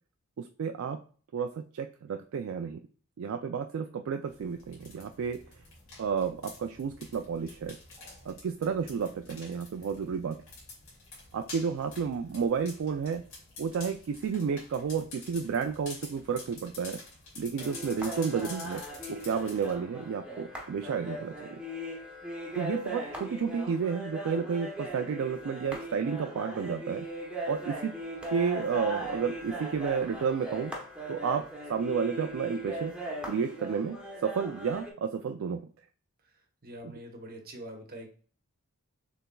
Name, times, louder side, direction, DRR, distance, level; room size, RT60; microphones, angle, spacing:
voice 1, 0.4-1.0 1.3-2.8 3.2-5.4 6.0-7.8 8.2-10.4 11.3-13.2 13.6-17.0 17.4-18.8 19.1-21.6 22.5-27.1 27.4-27.9 28.3-30.7 31.1-31.4 31.7-32.9 33.3-34.0 34.2-35.7 36.8-37.0, right 6 dB, 60° right, 6 dB, 0.3 m, -31 dB
sound 1, 4.2-19.7, left 3 dB, 60° left, 2.4 m, -48 dB
sound 2, 17.6-34.9, right 1 dB, 5° right, 0.9 m, -39 dB
voice 2, 36.6-38.1, right 1 dB, 45° right, 4 dB, 0.9 m, -44 dB
6.7 x 3.4 x 2.2 m, 0.43 s
head